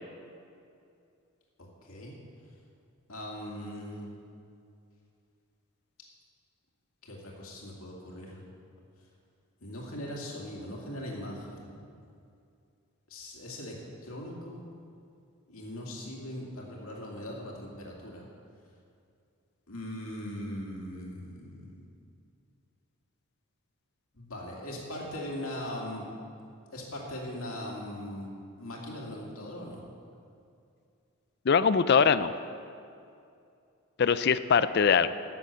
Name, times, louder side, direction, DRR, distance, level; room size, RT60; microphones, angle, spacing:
voice 1, 1.6-2.1 3.1-4.1 7.0-8.4 9.6-11.8 13.1-13.7 14.0-14.6 15.5-18.2 19.7-21.8 24.1-26.0 26.7-28.3 28.6-29.8, left 1 dB, 80° left, -2 dB, 2.3 m, -40 dB
voice 2, 31.5-32.3 34.0-35.1, left 6 dB, 50° left, 14 dB, 0.4 m, -22 dB
12.0 x 7.7 x 6.8 m, 2.5 s
head